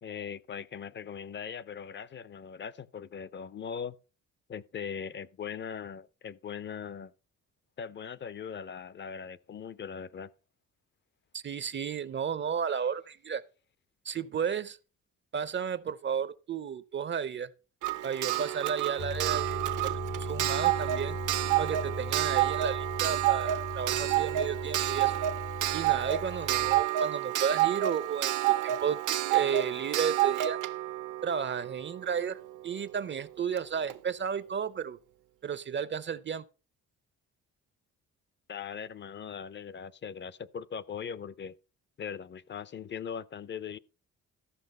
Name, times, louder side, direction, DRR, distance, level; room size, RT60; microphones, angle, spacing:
voice 1, 0.0-4.0 4.5-7.1 7.8-10.3 38.5-41.6 42.0-43.8, left 7 dB, 35° left, 0.6 m, -40 dB
voice 2, 11.3-13.4 14.1-14.8 15.3-17.5 18.0-21.2 21.6-25.1 25.7-29.0 29.3-30.6 31.2-35.0 35.4-36.4, right 7 dB, 40° right, 0.5 m, -33 dB
Clock, 17.8-32.4 33.6-33.7 33.9-34.0, right 14 dB, 80° right, 0.8 m, -29 dB
sound 1, 19.0-26.8, left 2 dB, 65° left, 1.2 m, -39 dB
14.0 x 5.9 x 5.4 m
cardioid pair, 90°, 30 cm